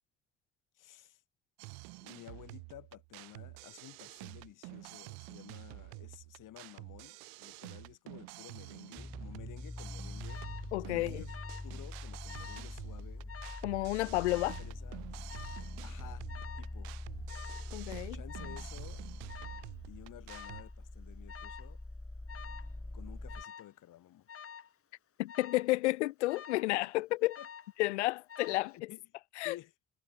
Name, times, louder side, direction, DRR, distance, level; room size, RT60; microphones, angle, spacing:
voice 1, 0.8-1.2 2.0-10.4 10.8-11.3 11.6-13.3 14.0-15.1 15.8-16.3 16.6-16.9 18.1-19.0 19.9-21.8 22.9-24.3 27.4-27.5 28.9-29.0 29.4-29.7, left 13 dB, 65° left, 3.5 m, -53 dB
sound 1, 1.6-20.6, right 40 dB or more, 80° right, 3.2 m, -49 dB
sound 2, 9.0-23.4, left 2 dB, 10° left, 1.7 m, -44 dB
Alarm, 10.3-10.7 11.3-11.8 12.0-12.7 13.3-13.7 14.3-14.7 15.3-15.7 16.3-16.7 17.3-17.7 18.3-18.7 19.3-19.7 20.3-20.7 21.3-21.7 22.3-22.7 23.3-23.7 24.3-24.7 25.3-25.7 26.3-26.8 27.3-27.8 28.3-28.8, left 7 dB, 40° left, 1.6 m, -48 dB
voice 2, 10.7-11.2 13.6-14.6 17.7-18.2 25.2-27.4 27.8-28.9 29.4-29.6, left 19 dB, 85° left, 1.2 m, -31 dB
hypercardioid pair, 45°, 34 cm